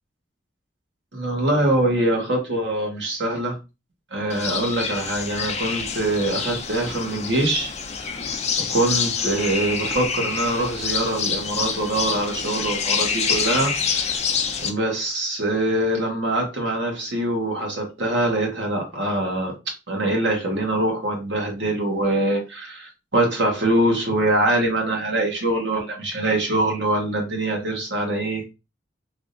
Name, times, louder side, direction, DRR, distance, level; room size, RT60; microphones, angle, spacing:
voice 1, 1.1-3.5 4.1-7.7 8.0-8.2 8.7-14.2 14.6-19.5 19.9-28.4, right 1 dB, 70° right, 1 dB, 1.3 m, -23 dB
sound 1, 4.3-14.7, left 6 dB, 35° left, 0.5 m, -27 dB
3.5 x 2.7 x 2.6 m, 0.27 s
head